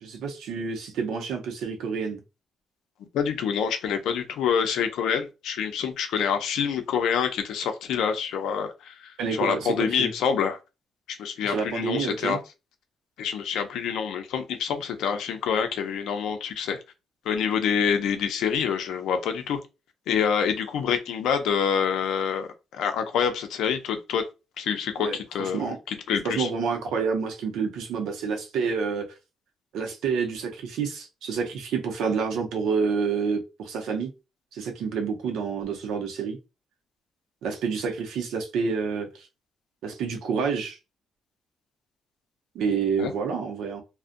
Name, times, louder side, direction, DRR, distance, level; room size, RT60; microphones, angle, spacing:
voice 1, 0.0-2.2 9.2-10.1 11.4-12.4 25.0-25.8 26.2-29.1 29.7-34.1 34.5-36.4 37.4-39.3 39.8-40.8 42.5-43.8, right 5 dB, 85° right, 0.6 m, -28 dB
voice 2, 3.1-10.6 11.1-12.4 13.2-16.8 17.3-19.6 20.1-24.2 24.6-26.5 43.0-43.1, left 7 dB, 80° left, 0.5 m, -27 dB
2.4 x 2.1 x 2.5 m
cardioid pair, 90°, 0 cm